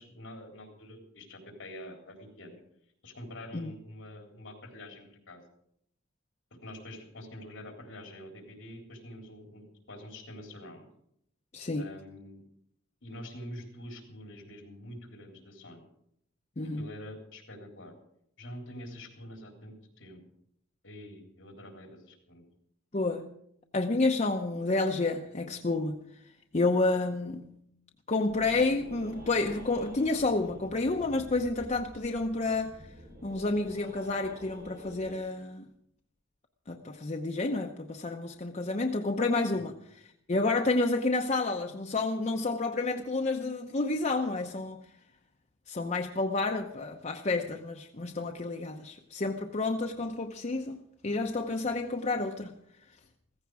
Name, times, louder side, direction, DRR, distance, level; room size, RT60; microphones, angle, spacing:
voice 1, 0.0-2.6 3.0-5.4 6.5-10.9 11.7-12.4 13.0-15.9 16.8-17.9 18.4-20.2 20.8-22.4, left 1 dB, 70° left, 3.7 m, -46 dB
voice 2, 11.5-11.9 16.6-16.9 22.9-23.3 23.7-26.0 26.5-27.5 28.1-32.8 33.2-35.7 36.7-44.8 45.7-52.5, left 3 dB, 35° left, 0.8 m, -30 dB
sound 1, 28.3-35.2, equal, 50° right, 5.5 m, -49 dB
15.5 x 15.0 x 4.8 m
head